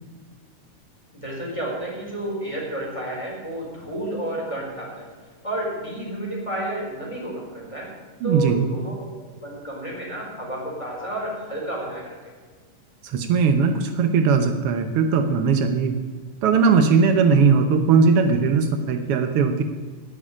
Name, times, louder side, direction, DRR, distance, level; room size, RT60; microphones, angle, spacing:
voice 1, 1.1-5.1 5.4-8.0 8.2-12.3, right 1 dB, 10° left, -4 dB, 4.1 m, -31 dB
voice 2, 8.2-8.7 13.0-15.9 16.4-19.6, right 5 dB, 90° right, 7 dB, 1.2 m, -19 dB
9.7 x 8.8 x 9.8 m, 1.5 s
omnidirectional pair, 3.8 m